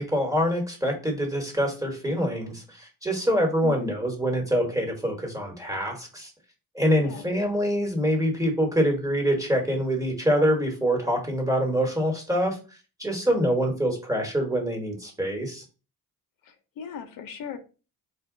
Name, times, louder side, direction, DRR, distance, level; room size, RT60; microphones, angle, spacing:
voice 1, 0.0-6.3 6.7-12.6 13.0-15.6, equal, 10° right, 1 dB, 1.3 m, -25 dB
voice 2, 3.6-4.0 7.0-7.3 16.4-17.6, left 8 dB, 70° left, 7 dB, 0.7 m, -38 dB
4.2 x 2.2 x 3.7 m, 0.33 s
cardioid pair, 120°, 35 cm